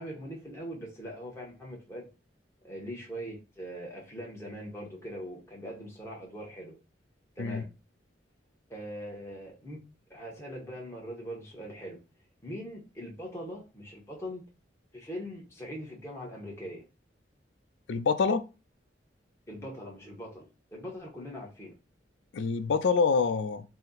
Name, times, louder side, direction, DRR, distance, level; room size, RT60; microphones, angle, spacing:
voice 1, 0.0-2.1 2.6-6.8 7.4-7.7 8.7-9.8 10.1-12.0 12.4-14.4 14.9-16.9 19.5-21.7, equal, 15° left, 0.9 m, -41 dB
voice 2, 17.9-18.4 22.3-23.6, left 5 dB, 80° left, 0.4 m, -26 dB
4.1 x 2.0 x 3.8 m
head